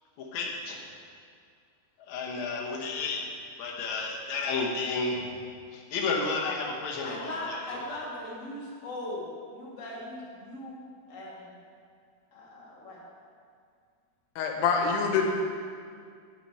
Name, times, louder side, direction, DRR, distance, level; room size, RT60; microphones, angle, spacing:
voice 1, 0.2-0.8 2.1-3.3 3.6-5.3 5.7-7.6, left 4 dB, 65° left, -2 dB, 1.9 m, -31 dB
voice 2, 7.0-11.5 12.3-13.0, left 1 dB, 50° left, -5 dB, 0.9 m, -39 dB
voice 3, 14.4-15.3, left 5 dB, 85° left, 2 dB, 3.0 m, -25 dB
9.2 x 5.9 x 5.7 m, 2.2 s
omnidirectional pair, 4.6 m